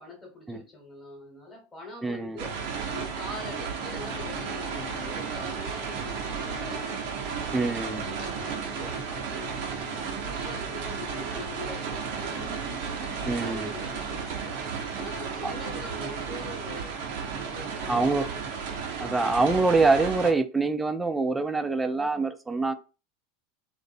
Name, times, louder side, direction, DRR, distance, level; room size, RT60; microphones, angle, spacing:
voice 1, 0.0-2.5 2.9-7.0 7.6-12.6 13.0-14.6 14.9-17.0 17.4-18.4, left 2 dB, 15° left, 0 dB, 1.1 m, -43 dB
voice 2, 2.0-2.4 7.5-8.1 13.2-13.7 15.4-15.5 17.9-18.3 19.0-22.7, right 3 dB, 10° right, 9 dB, 0.3 m, -25 dB
sound 1, 2.4-20.3, right 6 dB, 65° right, 0.6 m, -33 dB
sound 2, 3.4-5.3 6.3-8.3 12.1-14.3, left 3 dB, 40° left, 1.0 m, -46 dB
2.5 x 2.0 x 2.5 m, 0.32 s
hypercardioid pair, 95°, 0 cm